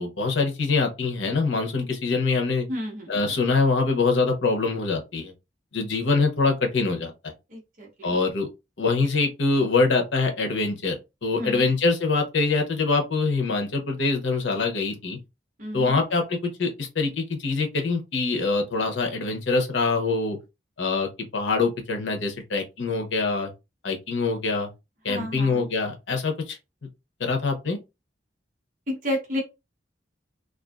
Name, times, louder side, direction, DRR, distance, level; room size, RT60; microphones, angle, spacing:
voice 1, 0.0-2.7 3.1-5.3 5.7-7.3 8.0-8.5 8.8-11.0 11.2-15.2 15.7-20.4 20.8-23.5 23.8-24.7 25.0-26.6 27.2-27.8, left 3 dB, 85° left, 0.8 m, -24 dB
voice 2, 2.7-3.2 7.5-8.2 11.3-11.7 15.6-16.0 25.1-25.6 28.9-29.4, left 1 dB, 45° right, 0.9 m, -31 dB
2.5 x 2.4 x 2.3 m
head